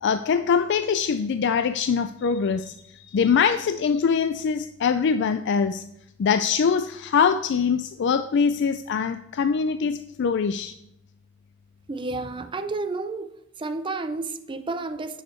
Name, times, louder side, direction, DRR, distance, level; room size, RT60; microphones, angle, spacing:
voice 1, 0.0-5.8 6.2-10.7, left 6 dB, 60° left, 0.4 m, -23 dB
voice 2, 11.9-13.3 13.6-15.2, right 3 dB, 25° right, 0.5 m, -31 dB
9.4 x 6.5 x 4.5 m
head